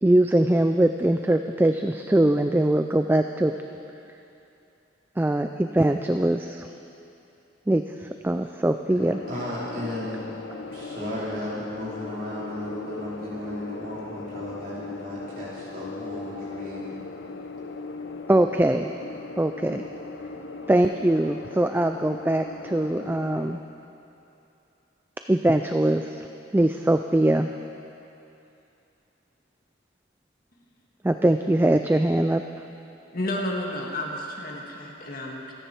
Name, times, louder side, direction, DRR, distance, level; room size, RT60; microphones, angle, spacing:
voice 1, 0.0-3.5 5.2-6.7 7.7-9.2 18.3-18.9 19.4-19.8 20.7-23.6 25.3-26.3 26.5-27.5 31.0-32.4, right 1 dB, 10° right, 6 dB, 0.3 m, -22 dB
sound 1, 9.0-23.6, left 3 dB, 75° left, 0.7 m, -39 dB
voice 2, 9.3-10.2 10.7-16.9, left 1 dB, 50° right, -8 dB, 4.3 m, -34 dB
voice 3, 33.1-35.5, left 1 dB, 50° left, -1 dB, 1.9 m, -31 dB
26.0 x 10.0 x 4.5 m, 2.8 s
head